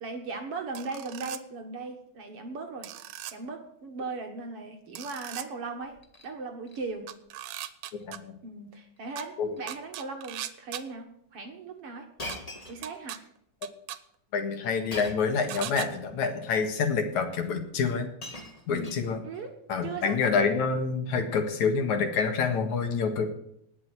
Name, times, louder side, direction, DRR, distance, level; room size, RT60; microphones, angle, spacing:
voice 1, 0.0-2.9 3.3-6.0 6.2-7.1 8.4-12.1 12.7-13.2 18.7-19.0 19.2-19.6 19.8-20.2, right 4 dB, 55° right, 4 dB, 2.1 m, -38 dB
sound 1, 0.8-1.4 2.8-3.3 5.0-5.5 7.1-8.2 9.2-9.3 9.7-10.8 12.3-12.4 12.8-13.2 13.6-14.0 15.5-15.9, right 13 dB, 80° right, 2.5 m, -38 dB
Shatter, 5.8-6.3 6.7-7.1 7.5-7.7 8.0-8.1 9.0-9.2 9.5-9.8 10.5-10.6 12.2-13.3 14.9-15.4 16.4-16.5 17.5-17.6 17.9-19.4 20.4-20.6, left 1 dB, 45° left, 0.4 m, -43 dB
voice 2, 14.3-18.1 18.7-19.2 19.7-23.3, left 5 dB, 65° left, 6 dB, 3.0 m, -27 dB
19.0 x 6.5 x 9.2 m, 0.74 s
omnidirectional pair, 3.7 m